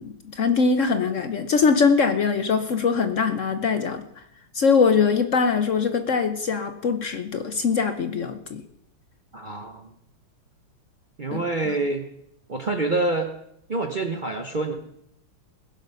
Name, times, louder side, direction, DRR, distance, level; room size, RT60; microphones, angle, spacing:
voice 1, 0.0-4.0 4.5-8.6 11.3-11.4, left 5 dB, 70° left, 8 dB, 0.7 m, -22 dB
voice 2, 9.3-9.9 11.2-12.1 12.5-13.3 13.7-14.7, right 2 dB, 70° right, 4 dB, 0.4 m, -26 dB
21.0 x 7.8 x 5.6 m, 0.75 s
omnidirectional pair, 2.4 m